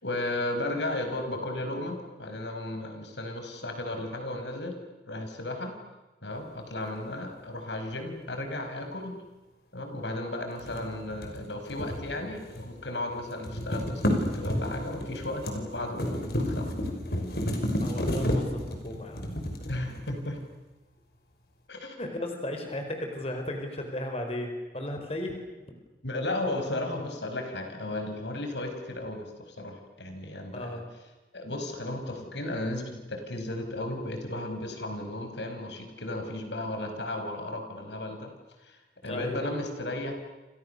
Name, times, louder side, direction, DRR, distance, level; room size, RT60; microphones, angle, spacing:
voice 1, 0.0-4.7 5.1-5.7 6.2-9.2 9.7-16.7 19.7-20.4 21.7-22.0 26.0-30.8 31.3-38.3 38.6-40.1, left 1 dB, 85° left, 5 dB, 5.2 m, -34 dB
sound 1, 10.6-12.8 13.1-20.4, equal, 60° left, 5.6 m, -31 dB
voice 2, 17.8-19.3 22.0-25.4 30.5-30.8 39.0-39.4, left 1 dB, 35° left, 4 dB, 4.8 m, -35 dB
29.5 x 29.0 x 6.8 m, 1.2 s
head